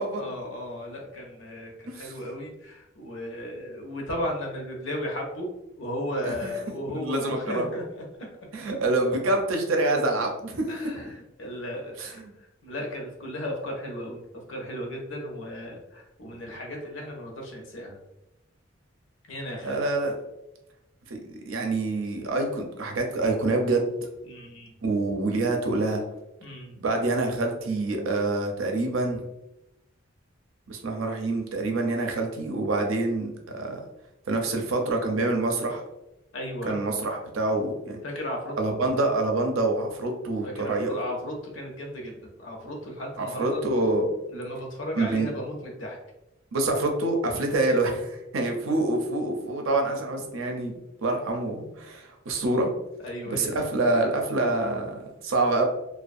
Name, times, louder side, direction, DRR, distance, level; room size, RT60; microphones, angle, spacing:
voice 1, 0.1-5.5 5.8-8.0 10.7-14.2 14.5-18.0 19.3-19.8 24.2-24.7 26.4-26.7 36.3-36.8 38.0-38.5 40.4-43.6 44.3-46.0 53.0-53.6, equal, 70° left, 0 dB, 0.7 m, -35 dB
voice 2, 6.9-7.7 8.5-10.7 10.9-11.0 12.0-12.3 19.6-20.2 21.1-21.2 21.5-23.9 24.8-26.0 26.8-29.3 30.7-33.8 34.3-35.8 36.6-38.0 38.6-41.0 43.2-44.1 44.9-45.3 46.5-52.7 53.3-55.6, right 2 dB, 90° right, 2 dB, 0.5 m, -26 dB
2.4 x 2.2 x 2.5 m, 0.89 s
head